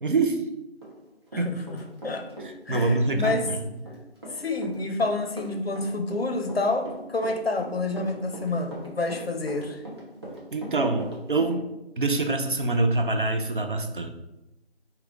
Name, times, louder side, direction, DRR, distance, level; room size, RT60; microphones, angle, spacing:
voice 1, 0.0-0.4 1.4-1.6 2.7-3.5 10.5-14.1, right 2 dB, 50° right, 5 dB, 0.6 m, -25 dB
Run, 0.8-2.5 2.7-11.5, right 1 dB, 25° right, 0.8 m, -40 dB
voice 2, 1.3-2.3 2.7-3.5 4.3-9.8, left 2 dB, 65° left, 6 dB, 0.8 m, -28 dB
4.9 x 3.1 x 3.4 m, 0.93 s
figure-of-eight pair, 160°, 33 cm